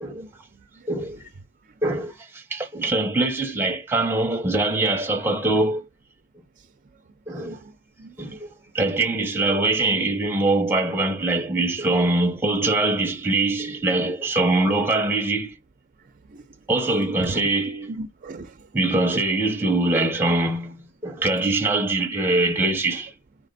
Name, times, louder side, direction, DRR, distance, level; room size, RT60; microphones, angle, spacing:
voice 1, 0.0-1.2 6.6-6.7 7.3-7.7 8.0-8.4 16.2-16.5 17.0-17.5 17.9-18.7, right 2 dB, 35° right, 0.5 m, -39 dB
voice 2, 0.9-1.2 1.8-5.8 7.3-7.6 8.2-15.6 16.7-17.9 18.7-23.1, right 2 dB, 10° right, 0.8 m, -23 dB
4.2 x 2.8 x 4.0 m
head